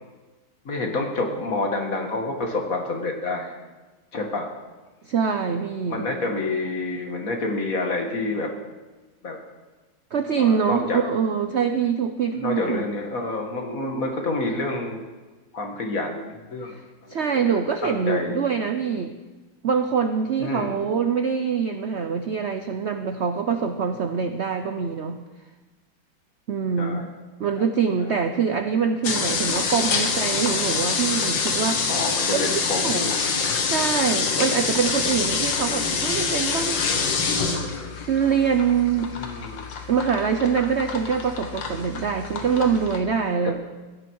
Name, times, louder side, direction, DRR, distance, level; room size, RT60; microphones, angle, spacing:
voice 1, 0.7-3.5 4.1-4.5 5.9-8.5 9.2-9.4 10.4-11.0 12.3-15.0 15.5-16.8 17.0-18.4 20.4-20.8 26.8-27.1 27.6-27.7 28.0-28.2 31.9-33.2 39.2-39.6, left 2 dB, 45° left, 2 dB, 2.1 m, -28 dB
voice 2, 5.0-6.1 10.1-12.9 17.1-19.1 19.6-25.2 26.5-27.1 27.4-31.8 32.3-33.0 33.6-36.8 38.1-39.1 39.9-43.5, right 6 dB, 80° right, 7 dB, 0.6 m, -24 dB
sound 1, 29.0-43.0, left 5 dB, 70° left, 2.0 m, -26 dB
16.5 x 12.0 x 4.7 m, 1.2 s
omnidirectional pair, 2.1 m